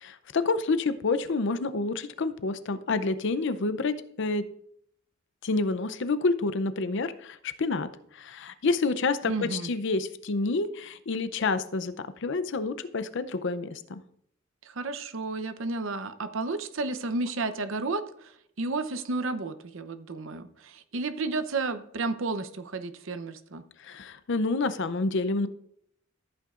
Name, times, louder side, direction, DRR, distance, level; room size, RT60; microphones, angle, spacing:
voice 1, 0.0-4.5 5.4-7.9 8.1-14.0 23.8-25.5, left 3 dB, 60° left, 13 dB, 0.6 m, -28 dB
voice 2, 9.3-9.7 14.6-18.3 18.6-23.6, right 3 dB, 70° right, 11 dB, 0.8 m, -32 dB
14.5 x 8.5 x 2.5 m, 0.70 s
head